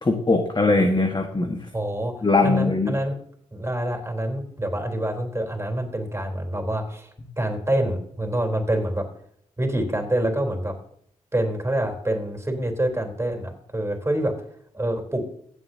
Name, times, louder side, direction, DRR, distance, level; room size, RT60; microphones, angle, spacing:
voice 1, 0.0-1.7 2.2-2.9, left 3 dB, 30° left, 4 dB, 1.7 m, -21 dB
voice 2, 1.7-2.1 2.4-3.2 3.5-7.1 7.4-9.1 9.6-10.7 11.3-14.3 14.7-15.2, right 1 dB, 20° right, 2 dB, 3.9 m, -26 dB
16.0 x 7.5 x 2.9 m, 0.65 s
supercardioid pair, 45°, 14 cm